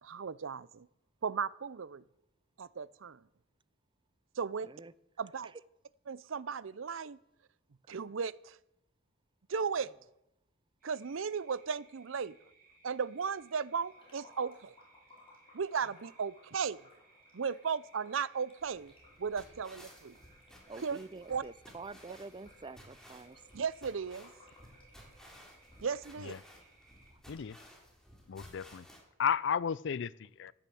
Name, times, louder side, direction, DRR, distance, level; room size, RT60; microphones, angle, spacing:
voice 1, 0.0-0.9 1.2-2.0 2.6-3.2 4.4-4.7 5.2-5.5 6.1-7.2 7.9-8.6 9.5-9.9 10.8-12.4 12.8-14.7 15.5-16.8 17.3-18.9 19.2-20.2 20.8-21.0 21.3-21.4 23.5-24.3 25.8-26.3, right 6 dB, 75° right, 0.6 m, -36 dB
sound 1, 10.8-27.1, right 3 dB, 45° right, 5.0 m, -65 dB
sound 2, 13.9-26.7 27.0-27.1 27.4-27.5, left 2 dB, 30° left, 4.9 m, -63 dB
sound 3, 18.6-29.0, equal, 5° left, 3.6 m, -57 dB
voice 2, 20.7-23.4, right 3 dB, 25° right, 0.5 m, -47 dB
voice 3, 28.3-28.9 29.2-30.5, left 7 dB, 65° left, 0.4 m, -33 dB
15.5 x 10.5 x 7.7 m
head